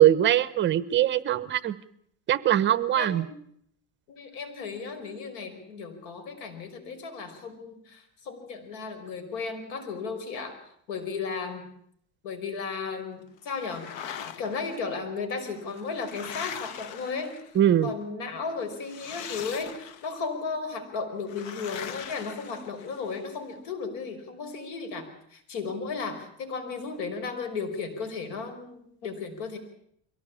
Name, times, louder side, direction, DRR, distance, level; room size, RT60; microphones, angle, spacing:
voice 1, 0.0-1.8 2.3-3.3 17.5-17.9, right 12 dB, 35° right, 16 dB, 1.0 m, -21 dB
voice 2, 3.0-3.4 4.1-10.6 10.9-11.7 12.2-13.9 14.3-17.3 17.8-29.6, left 4 dB, 85° left, 7 dB, 5.3 m, -35 dB
sound 1, 13.5-14.8 15.6-17.7 18.8-20.2 21.3-23.2, left 8 dB, 65° left, 1.4 m, -41 dB
23.0 x 17.5 x 8.6 m, 0.68 s
cardioid pair, 150°, 32 cm